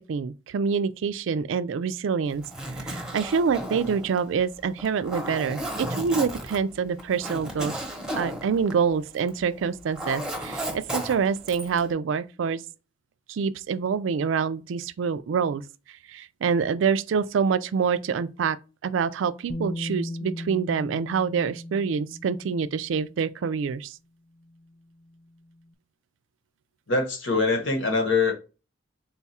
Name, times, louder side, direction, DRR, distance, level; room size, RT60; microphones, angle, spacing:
voice 1, 0.1-2.4 2.8-7.8 8.2-12.6 13.3-15.6 16.1-18.6 18.8-23.9, right 6 dB, 75° right, 0.3 m, -26 dB
Zipper (clothing), 2.3-9.4 9.7-11.8, right 1 dB, 5° right, 0.8 m, -34 dB
Bass guitar, 19.5-23.4 24.6-24.7, left 1 dB, 25° left, 0.5 m, -37 dB
voice 2, 26.9-28.3, left 3 dB, 70° left, 1.1 m, -23 dB
3.8 x 2.3 x 4.1 m
head